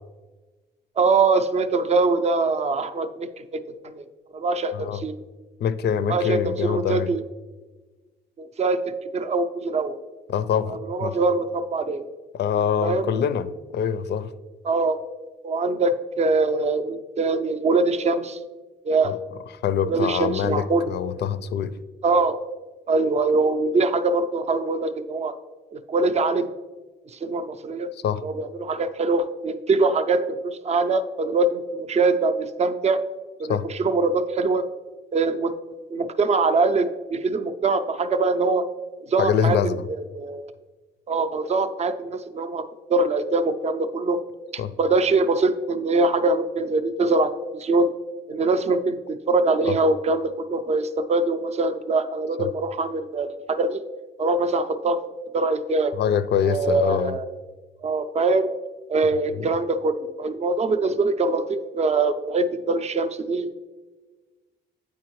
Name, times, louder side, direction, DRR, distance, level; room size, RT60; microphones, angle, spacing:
voice 1, 1.0-3.6 3.9-4.0 4.3-5.1 6.1-7.2 8.4-10.0 10.9-12.0 12.8-13.1 14.6-15.0 15.4-18.4 18.8-19.1 19.9-20.9 22.0-22.4 22.9-25.3 25.7-26.5 27.1-27.9 28.2-33.0 33.4-34.7 35.1-35.5 35.9-38.7 39.1-39.6 40.2-40.5 41.1-44.2 44.8-47.9 48.3-53.8 54.2-55.0 55.3-55.9 56.4-57.3 57.8-58.5 58.9-63.5, right 3 dB, 35° right, 11 dB, 0.4 m, -23 dB
voice 2, 5.6-7.1 10.3-11.1 12.3-14.3 19.0-19.2 19.6-21.7 27.9-28.2 33.5-33.7 39.2-39.8 44.6-44.7 49.6-49.8 52.4-52.5 56.0-57.2 59.3-59.5, left 8 dB, 60° left, 13 dB, 0.4 m, -24 dB
8.4 x 4.4 x 3.1 m, 1.3 s
cardioid pair, 90°, 20 cm